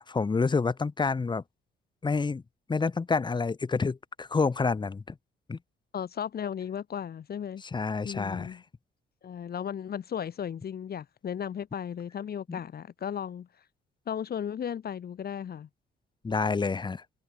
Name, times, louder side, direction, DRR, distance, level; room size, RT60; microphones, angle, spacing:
voice 1, 0.0-1.4 2.0-2.4 2.7-5.1 5.5-5.6 7.6-8.6 12.5-12.6 16.2-17.0, left 4 dB, 25° left, 0.8 m, -28 dB
voice 2, 5.9-7.6 8.0-8.6 9.2-13.5 14.1-15.7, left 8 dB, 50° left, 1.4 m, -35 dB
cardioid pair, 90°, 20 cm